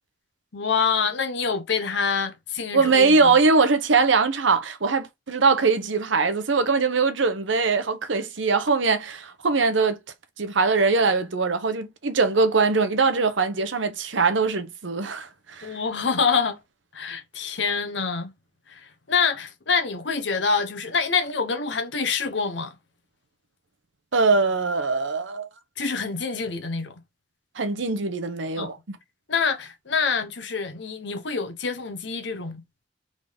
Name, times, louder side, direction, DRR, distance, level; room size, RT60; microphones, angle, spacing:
voice 1, 0.5-3.3 15.6-16.6 16.9-18.3 18.7-22.7 25.8-26.9 28.6-28.7 29.3-32.6, left 5 dB, 70° left, 0.9 m, -26 dB
voice 2, 2.7-10.0 10.4-15.8 24.1-25.5 27.5-29.0, right 4 dB, 85° right, 0.9 m, -22 dB
4.0 x 3.7 x 3.5 m
head